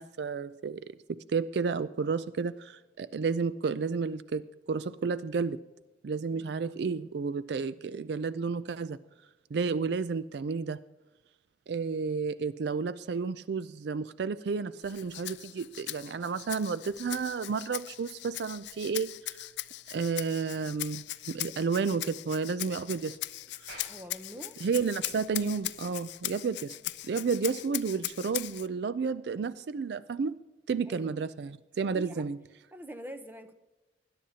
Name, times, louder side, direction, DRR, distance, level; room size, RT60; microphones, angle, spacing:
voice 1, 0.0-4.4 4.7-5.6 6.0-9.0 9.5-10.8 11.7-19.4 19.9-23.2 23.6-23.8 24.6-26.8 27.1-30.4 30.7-32.4, right 5 dB, 65° right, 15 dB, 0.4 m, -31 dB
Rattle (instrument), 14.8-28.7, left 15 dB, 70° left, 0.4 m, -39 dB
Clapping, 23.7-28.3, right 2 dB, 90° right, 5.2 m, -55 dB
voice 2, 23.9-24.6 30.9-31.2 31.9-32.2 32.7-33.5, equal, 10° right, 8 dB, 0.8 m, -44 dB
20.0 x 11.0 x 2.8 m, 1.1 s
head